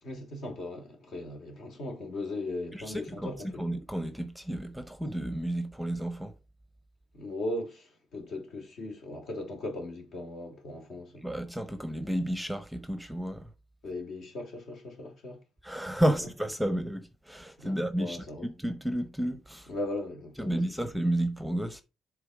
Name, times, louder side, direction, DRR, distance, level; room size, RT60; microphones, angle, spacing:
voice 1, 0.0-3.6 7.1-11.2 13.8-15.4 16.0-16.1 17.6-18.5 19.7-20.8, left 2 dB, 70° left, 2.5 m, -38 dB
voice 2, 2.7-6.3 11.2-13.5 15.6-18.2 18.6-19.7 20.4-21.8, right 1 dB, ahead, 0.7 m, -31 dB
7.0 x 3.5 x 4.9 m
cardioid pair, 90°, 0 cm